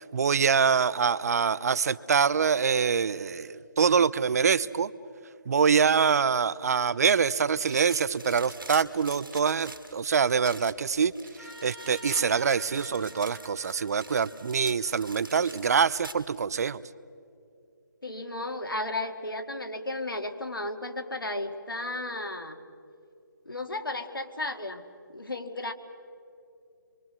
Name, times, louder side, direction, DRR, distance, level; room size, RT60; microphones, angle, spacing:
voice 1, 0.0-4.9 5.5-11.1 11.4-16.8, right 6 dB, 50° right, 19 dB, 0.6 m, -25 dB
sound 1, 7.6-16.4, right 2 dB, 85° right, 2.5 m, -46 dB
Trumpet, 11.4-15.9, equal, 5° left, 2.3 m, -49 dB
voice 2, 18.0-22.6 23.5-24.8 25.1-25.7, left 2 dB, 90° left, 6 dB, 2.1 m, -34 dB
26.5 x 24.0 x 6.2 m, 2.5 s
figure-of-eight pair, 155°, 11 cm